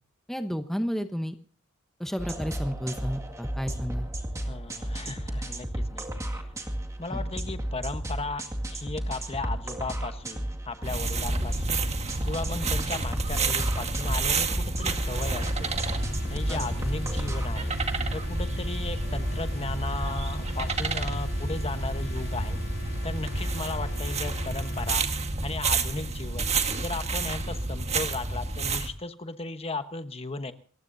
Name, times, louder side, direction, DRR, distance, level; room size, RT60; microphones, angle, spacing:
voice 1, 0.3-1.3 2.0-4.1 7.1-7.2 11.4-11.5 12.6-12.7 16.5-16.7, equal, ahead, 7 dB, 0.9 m, -32 dB
sound 1, 2.2-17.5, right 1 dB, 15° right, 2.0 m, -33 dB
voice 2, 4.5-6.0 6.3-6.5 7.0-11.8 12.3-15.7 16.3-17.8 18.1-22.6 23.0-25.1 25.4-26.5 26.8-30.5, left 3 dB, 30° left, 9 dB, 1.1 m, -36 dB
sound 2, 10.8-28.9, right 3 dB, 30° right, 1.5 m, -29 dB
sound 3, 15.0-25.0, left 4 dB, 60° left, 3.1 m, -46 dB
28.5 x 15.5 x 2.7 m, 0.42 s
head